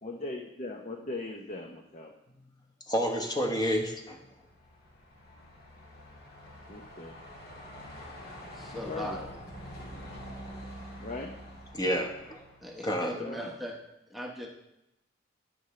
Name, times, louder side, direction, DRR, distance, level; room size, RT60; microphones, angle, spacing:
voice 1, 0.0-2.1 6.7-7.2 8.7-9.3 11.0-11.4 13.2-13.5, left 2 dB, 40° left, 2 dB, 0.7 m, -39 dB
voice 2, 2.9-4.2 11.7-12.4 12.8-13.1, equal, 20° left, 2 dB, 1.2 m, -29 dB
Truck, 4.0-13.4, equal, 55° left, 2.1 m, -46 dB
voice 3, 8.5-9.2 12.6-13.7 14.1-14.5, left 1 dB, ahead, -1 dB, 0.9 m, -38 dB
10.5 x 9.5 x 3.2 m, 0.87 s
head